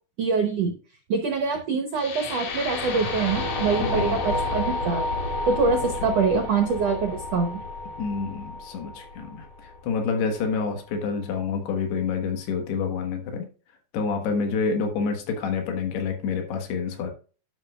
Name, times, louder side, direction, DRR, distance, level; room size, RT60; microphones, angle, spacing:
voice 1, 0.2-0.7 1.1-5.0 5.5-7.6, right 5 dB, 90° right, 5 dB, 1.4 m, -24 dB
sound 1, 1.9-10.0, left 2 dB, 60° left, 3.4 m, -30 dB
voice 2, 3.8-4.2 8.0-13.5 13.9-17.1, left 5 dB, 85° left, 4 dB, 3.5 m, -28 dB
12.5 x 6.2 x 2.4 m, 0.36 s
omnidirectional pair, 4.6 m